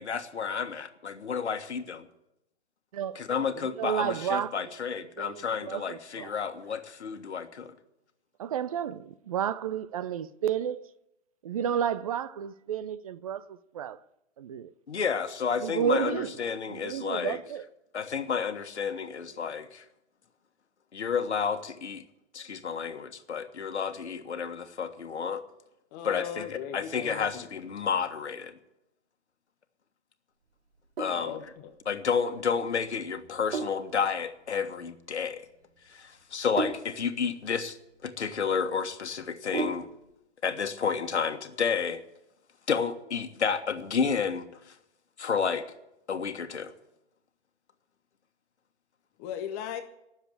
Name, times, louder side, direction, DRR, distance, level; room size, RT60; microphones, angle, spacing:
voice 1, 0.0-2.1 3.1-7.7 14.9-17.4 17.9-19.8 20.9-22.0 22.3-25.4 26.0-28.5 31.0-31.4 31.8-35.5 35.9-37.8 38.0-39.9 40.4-42.0 42.7-44.7 45.2-45.7 46.1-46.7, left 6 dB, 75° left, 1.5 m, -31 dB
voice 2, 3.6-4.6 5.2-6.3 8.4-10.8 11.4-14.0 14.4-14.7 15.6-16.3 16.7-17.6, right 9 dB, 30° right, 0.5 m, -31 dB
voice 3, 25.9-27.5 31.1-31.7 49.2-49.8, left 9 dB, 15° left, 0.5 m, -38 dB
Sink (filling or washing), 30.7-40.1, right 4 dB, 65° right, 2.5 m, -39 dB
18.5 x 7.3 x 8.5 m
figure-of-eight pair, 135°, 34 cm